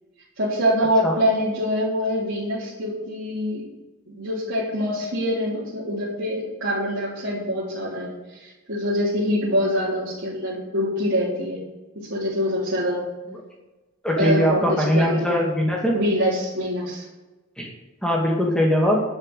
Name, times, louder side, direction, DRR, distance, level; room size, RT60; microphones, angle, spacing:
voice 1, 0.4-3.6 4.1-8.1 8.4-11.6 12.0-13.0 14.2-15.4 15.9-17.0, equal, 60° right, -10 dB, 3.8 m, -24 dB
voice 2, 14.0-15.9 17.6-17.7 18.0-19.0, equal, 5° left, -2 dB, 2.2 m, -21 dB
11.5 x 6.9 x 8.3 m, 1.1 s
head